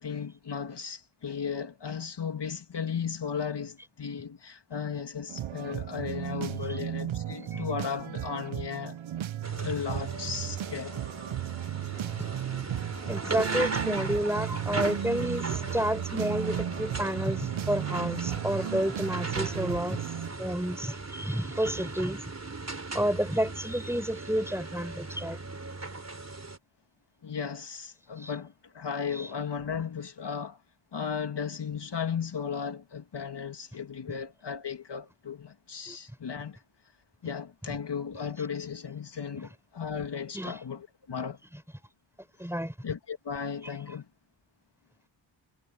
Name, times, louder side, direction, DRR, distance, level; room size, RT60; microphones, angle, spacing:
voice 1, 0.0-9.0 9.5-11.0 27.2-30.6 30.9-36.6 37.2-41.4 42.8-44.1, left 6 dB, 55° left, 2.2 m, -35 dB
sound 1, 5.3-20.3, right 11 dB, 75° right, 0.9 m, -35 dB
sound 2, 9.4-26.6, right 3 dB, 35° right, 4.0 m, -37 dB
voice 2, 13.1-20.1 20.4-22.2 22.9-25.4 28.2-28.3 35.9-36.0 40.3-40.6 42.4-42.7, equal, 5° right, 6.1 m, -30 dB
cardioid pair, 45°, 48 cm